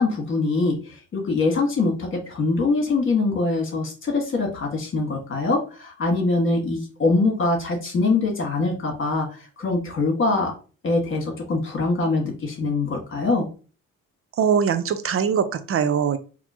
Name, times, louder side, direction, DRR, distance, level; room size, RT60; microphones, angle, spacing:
voice 1, 0.0-10.5 10.8-13.5, left 3 dB, 40° left, 0 dB, 1.9 m, -23 dB
voice 2, 14.4-16.2, right 7 dB, 50° right, 11 dB, 0.6 m, -22 dB
4.2 x 2.9 x 2.9 m, 0.36 s
cardioid pair, 90°, 30 cm